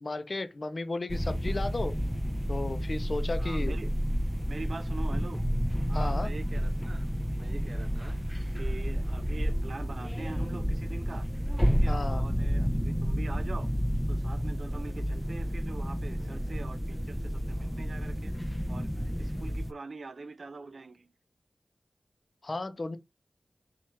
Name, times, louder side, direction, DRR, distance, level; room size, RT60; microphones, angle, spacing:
voice 1, 0.0-1.9 2.5-3.7 5.9-6.3 11.9-12.2 22.4-23.0, left 2 dB, 55° left, 0.5 m, -34 dB
sound 1, 1.1-19.7, equal, ahead, 0.4 m, -30 dB
voice 2, 3.4-3.9 4.5-5.4 5.9-7.1 7.4-8.2 8.5-11.3 11.7-13.7 14.1-18.3 18.7-18.9 19.2-21.1, right 3 dB, 75° right, 0.4 m, -44 dB
3.0 x 2.4 x 4.3 m
cardioid pair, 50°, 0 cm